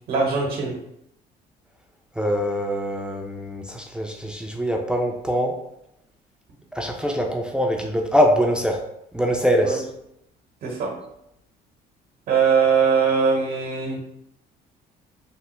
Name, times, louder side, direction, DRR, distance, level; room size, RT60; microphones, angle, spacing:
voice 1, 0.1-0.8 9.6-9.8 10.6-10.9 12.3-14.0, right 5 dB, 65° right, 0 dB, 0.8 m, -21 dB
voice 2, 2.2-5.6 6.7-8.8 9.1-9.8, equal, 5° right, 1 dB, 0.3 m, -23 dB
3.2 x 2.0 x 2.9 m, 0.79 s
cardioid pair, 110°, 17 cm